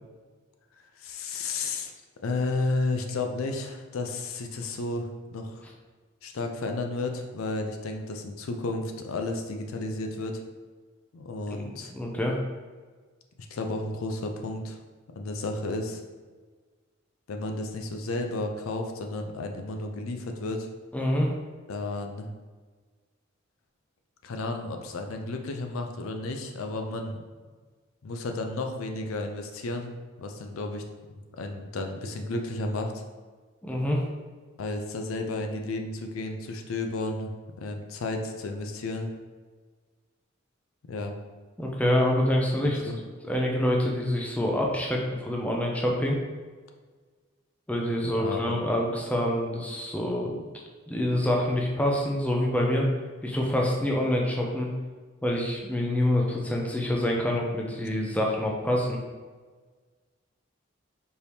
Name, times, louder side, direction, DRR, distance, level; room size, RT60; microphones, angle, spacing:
voice 1, 1.0-1.9 2.2-5.6 6.2-10.4 11.1-11.9 13.5-14.8 15.2-16.0 17.3-20.7 21.7-22.3 24.2-27.2 28.0-29.9 30.2-30.8 31.3-32.9 34.6-37.3 37.6-39.1 40.9-41.1 42.6-43.0 48.0-48.6, left 2 dB, 80° left, 4 dB, 0.5 m, -32 dB
voice 2, 11.6-12.4 20.9-21.3 33.6-34.0 41.6-42.9 43.2-46.2 47.7-50.5 50.9-52.9 53.2-54.7 55.2-59.0, left 1 dB, 5° left, -1 dB, 0.4 m, -26 dB
4.5 x 2.7 x 3.4 m, 1.4 s
head